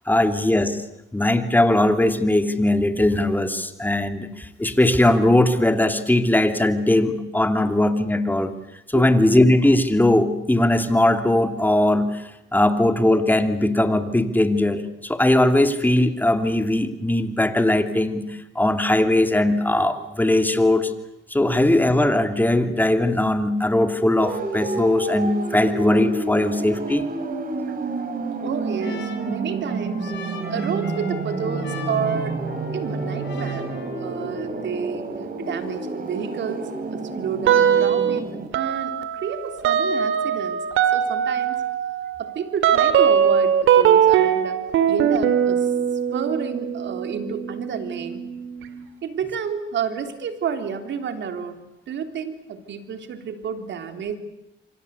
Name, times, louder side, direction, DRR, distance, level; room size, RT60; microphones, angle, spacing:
voice 1, 0.1-0.8 1.1-8.5 8.9-20.9 21.3-27.1, left 1 dB, 10° left, 8 dB, 2.8 m, -19 dB
sound 1, 24.2-38.5, right 3 dB, 45° right, 4.5 m, -29 dB
Trumpet, 28.0-34.7, left 6 dB, 65° left, 7.7 m, -41 dB
voice 2, 28.4-30.1 30.5-32.4 32.7-33.7 34.0-40.6 40.9-41.6 42.2-44.6 44.9-45.7 46.1-48.2 49.0-54.2, right 7 dB, 65° right, 8 dB, 3.4 m, -30 dB
sound 2, 37.5-38.2 38.5-48.9, right 8 dB, 85° right, 2.3 m, -21 dB
28.0 x 25.0 x 8.3 m, 0.88 s
cardioid pair, 90°, 20 cm